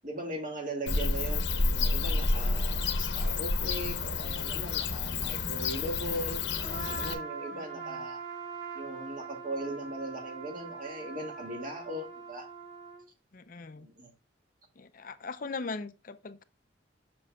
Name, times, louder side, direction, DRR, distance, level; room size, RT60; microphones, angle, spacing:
voice 1, 0.0-8.2 8.7-12.5 13.8-14.1, right 1 dB, 45° right, 2.1 m, -39 dB
Bird / Cricket, 0.9-7.1, left 3 dB, 70° left, 0.9 m, -30 dB
Trumpet, 6.6-13.1, right 5 dB, 60° right, 3.4 m, -42 dB
voice 2, 7.5-8.1 13.3-13.9 14.8-16.4, left 4 dB, 45° left, 0.5 m, -40 dB
7.4 x 6.8 x 2.3 m
head